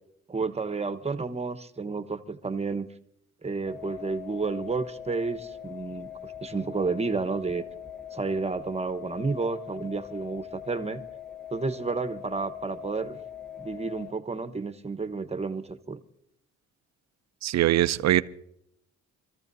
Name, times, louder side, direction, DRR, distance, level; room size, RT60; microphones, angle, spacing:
voice 1, 0.3-2.9 3.4-7.6 8.1-11.0 11.5-13.2 13.6-16.0, right 4 dB, 20° right, 1.1 m, -31 dB
sound 1, 3.7-14.1, left 9 dB, ahead, 0.9 m, -42 dB
voice 2, 17.4-18.2, right 13 dB, 60° right, 0.6 m, -22 dB
26.5 x 14.0 x 2.7 m
cardioid pair, 90°, 30 cm